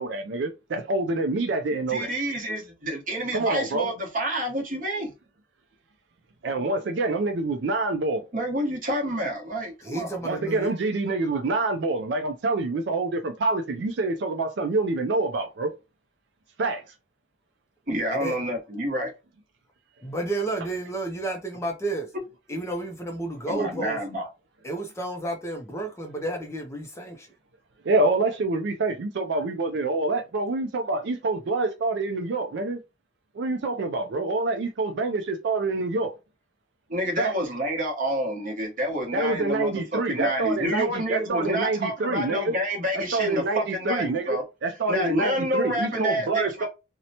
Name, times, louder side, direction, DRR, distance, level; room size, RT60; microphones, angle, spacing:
voice 1, 0.0-2.1 3.3-3.9 6.4-8.2 10.2-15.7 16.6-16.8 27.8-32.8 33.4-36.1 37.2-37.3 39.1-42.5 42.9-46.7, right 3 dB, 60° right, 0.4 m, -26 dB
voice 2, 1.7-5.1 8.3-10.2 17.9-19.1 23.5-24.3 36.9-44.4 44.9-46.7, equal, 45° right, 1.0 m, -28 dB
voice 3, 9.8-10.7 18.1-18.4 20.0-22.1 22.5-24.0 24.6-27.3, right 2 dB, 15° left, 0.4 m, -31 dB
2.8 x 2.1 x 2.7 m
head